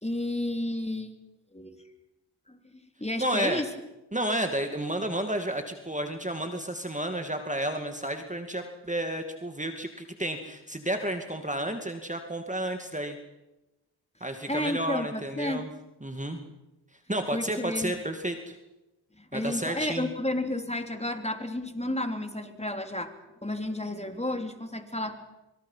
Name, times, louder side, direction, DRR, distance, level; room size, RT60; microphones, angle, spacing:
voice 1, 0.0-1.1 1.5-1.8 2.5-2.6 3.0-3.7 14.5-15.6 17.3-18.0 19.2-23.2 23.4-25.2, left 1 dB, 15° left, 6 dB, 3.1 m, -32 dB
voice 2, 3.2-3.6 4.1-13.2 14.2-15.7 16.0-16.4 17.1-18.5 19.3-20.1, right 1 dB, 15° right, 5 dB, 2.3 m, -31 dB
25.0 x 24.0 x 5.7 m, 0.99 s
cardioid pair, 50°, 48 cm